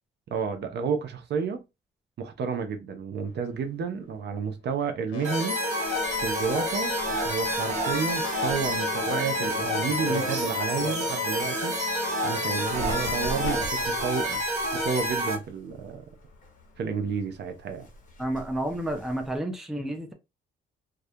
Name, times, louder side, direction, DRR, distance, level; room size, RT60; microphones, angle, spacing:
voice 1, 0.3-1.6 2.2-5.6 6.2-7.0 7.2-11.8 12.2-14.4 14.7-16.0 16.8-17.9, right 6 dB, 60° right, 0.6 m, -31 dB
sound 1, 3.3-4.6 4.9-15.2 16.1-16.2 16.9-17.0 17.6-17.7, left 7 dB, 80° left, 0.6 m, -38 dB
sound 2, 5.2-15.4, equal, 35° right, 1.1 m, -29 dB
Bird, 5.8-11.3 11.7-19.4, left 2 dB, 40° left, 1.0 m, -41 dB
voice 2, 18.2-20.1, right 1 dB, ahead, 0.5 m, -30 dB
2.3 x 2.1 x 2.7 m
cardioid pair, 90°, 20 cm